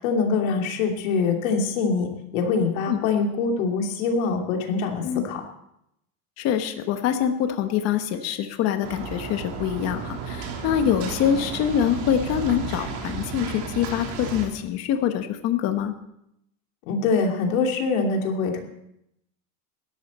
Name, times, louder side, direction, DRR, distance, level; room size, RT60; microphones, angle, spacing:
voice 1, 0.0-5.4 16.9-18.6, left 4 dB, 90° left, 2 dB, 2.9 m, -24 dB
voice 2, 6.4-15.9, left 9 dB, 40° left, 8 dB, 1.1 m, -25 dB
sound 1, 8.8-14.5, right 5 dB, 50° right, 3.2 m, -33 dB
18.0 x 13.0 x 4.2 m, 0.79 s
cardioid pair, 170°, 39 cm